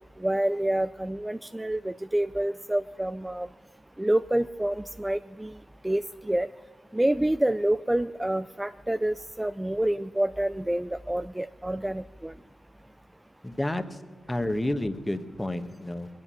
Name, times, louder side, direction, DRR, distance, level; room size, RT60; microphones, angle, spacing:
voice 1, 0.2-3.5 4.0-5.5 5.8-6.5 6.9-12.3, right 1 dB, 15° right, 12 dB, 0.4 m, -27 dB
voice 2, 13.4-13.8 14.3-16.1, left 1 dB, 15° left, 9 dB, 1.2 m, -30 dB
21.5 x 8.9 x 5.6 m, 1.4 s
supercardioid pair, 45°, 0 cm